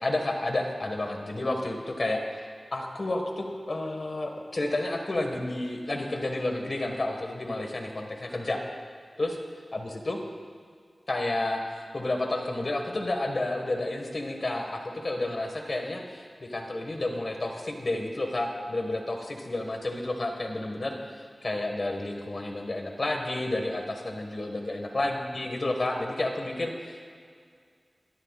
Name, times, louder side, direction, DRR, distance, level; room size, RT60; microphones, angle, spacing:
voice 1, 0.0-2.4 2.7-8.6 9.2-9.4 9.7-10.2 11.1-27.0, left 2 dB, 55° left, 3 dB, 1.7 m, -31 dB
23.5 x 12.5 x 2.5 m, 2.1 s
wide cardioid pair, 65°, 0 cm